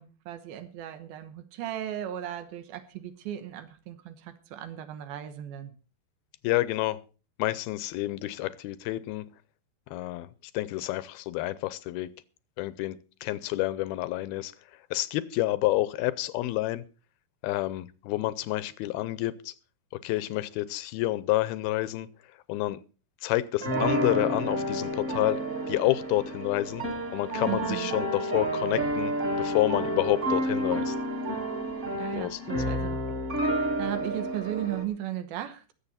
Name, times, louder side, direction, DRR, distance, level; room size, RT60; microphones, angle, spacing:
voice 1, 0.0-5.7 27.4-27.9 32.0-33.0 33.5-35.7, right 12 dB, 80° right, 2.9 m, -36 dB
voice 2, 6.4-7.0 7.4-9.3 9.9-10.3 10.5-12.1 12.6-13.0 13.2-14.5 14.9-16.8 17.4-19.5 20.0-22.1 22.5-22.8 23.2-26.8 27.1-31.0 32.1-32.4, left 17 dB, 85° left, 2.6 m, -29 dB
sound 1, 23.6-34.8, right 1 dB, 20° right, 2.3 m, -30 dB
22.0 x 7.7 x 4.2 m
omnidirectional pair, 4.3 m